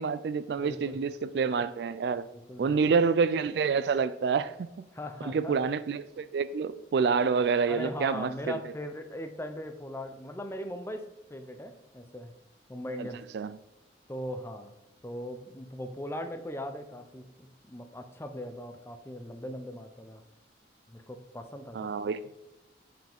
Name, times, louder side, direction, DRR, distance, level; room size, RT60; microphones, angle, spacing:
voice 1, 0.0-2.3 2.6-4.7 5.2-8.6 13.0-13.1 13.3-13.5 21.7-22.2, right 5 dB, 60° right, 0.3 m, -27 dB
voice 2, 0.6-1.0 2.3-2.8 4.9-5.6 7.7-12.3 12.7-13.2 14.1-14.7 15.0-20.2 20.9-21.9, left 1 dB, 15° left, 0.5 m, -39 dB
7.4 x 5.9 x 3.5 m
head